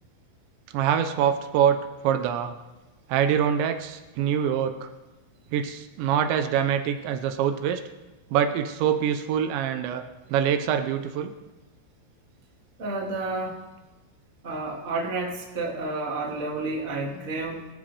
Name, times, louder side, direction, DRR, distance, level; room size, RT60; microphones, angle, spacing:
voice 1, 0.7-2.5 3.1-4.9 5.5-7.8 8.3-10.0 10.3-11.3, right 9 dB, 80° right, 8 dB, 3.0 m, -24 dB
voice 2, 12.8-13.6 14.4-17.7, right 3 dB, 25° right, -2 dB, 1.7 m, -30 dB
23.0 x 13.5 x 3.4 m, 1.1 s
omnidirectional pair, 5.2 m